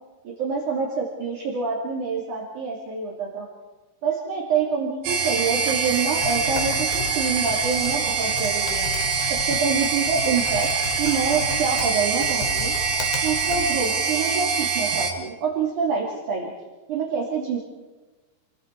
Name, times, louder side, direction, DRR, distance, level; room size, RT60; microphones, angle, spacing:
voice 1, 0.2-3.5 4.0-8.9 9.3-10.7 11.0-12.7 13.2-16.5 16.9-17.6, right 5 dB, 50° right, -3 dB, 3.8 m, -26 dB
sound 1, 5.0-15.1, right 5 dB, 90° right, 4.4 m, -24 dB
Typing, 6.0-14.2, left 5 dB, 80° left, 4.1 m, -35 dB
28.5 x 22.0 x 4.6 m, 1.2 s
omnidirectional pair, 4.8 m